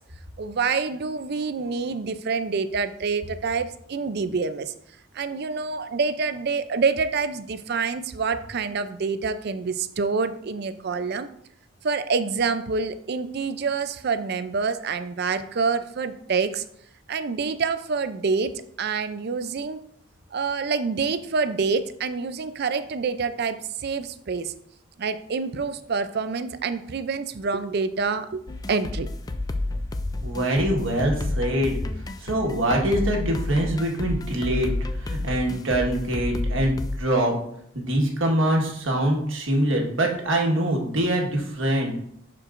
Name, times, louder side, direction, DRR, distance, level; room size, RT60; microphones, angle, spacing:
voice 1, 0.4-4.7 5.1-11.3 11.8-16.6 17.1-19.8 20.3-24.5 25.0-28.4 28.7-29.1, right 4 dB, 50° right, 12 dB, 0.4 m, -27 dB
sound 1, 28.5-37.0, left 2 dB, 20° left, 0.3 m, -30 dB
voice 2, 30.2-31.8 32.2-37.3 37.7-41.9, right 1 dB, 70° right, 1 dB, 1.5 m, -24 dB
11.5 x 4.6 x 2.5 m, 0.70 s
head